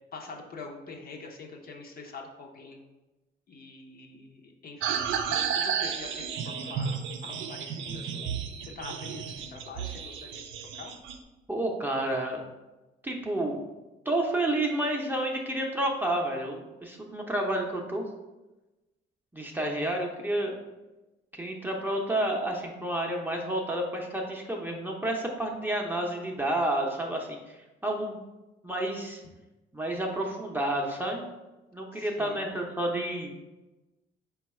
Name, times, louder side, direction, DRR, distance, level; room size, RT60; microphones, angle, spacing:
voice 1, 0.1-2.8 3.5-8.3 8.6-10.9 31.9-32.5, left 4 dB, 50° left, 0 dB, 0.7 m, -45 dB
sound 1, 4.8-11.2, right 7 dB, 75° right, 0.4 m, -32 dB
voice 2, 11.5-12.4 13.0-13.6 14.1-18.0 19.3-20.6 21.4-27.6 27.8-28.2 28.6-29.2 29.7-31.2 31.7-33.3, right 1 dB, 10° right, 0 dB, 0.6 m, -30 dB
4.4 x 2.3 x 4.2 m, 1.1 s
cardioid pair, 90°, 20 cm